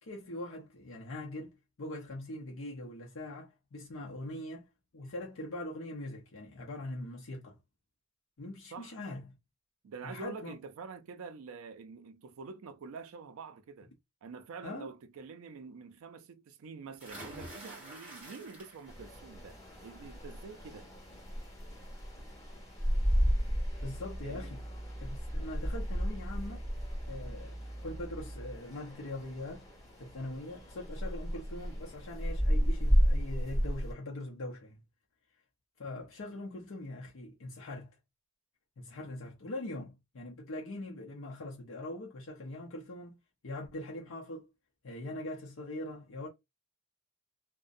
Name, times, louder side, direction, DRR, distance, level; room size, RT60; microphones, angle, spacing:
voice 1, 0.0-7.6 8.4-9.4 10.0-10.5 14.6-14.9 23.8-24.6 25.0-26.7 27.1-29.7 30.0-34.8 35.8-37.9 38.8-44.5 44.8-46.3, left 1 dB, 70° left, 0.6 m, -42 dB
voice 2, 9.8-13.9 14.2-20.9 24.2-24.6, right 5 dB, 80° right, 0.4 m, -47 dB
sound 1, 17.0-19.1 19.5-19.9 21.3-21.4 21.8-21.9, right 1 dB, 10° right, 1.2 m, -47 dB
sound 2, 18.9-33.9, equal, 15° left, 1.3 m, -33 dB
sound 3, 23.7-28.6, right 1 dB, 50° left, 1.3 m, -44 dB
2.5 x 2.1 x 2.5 m
head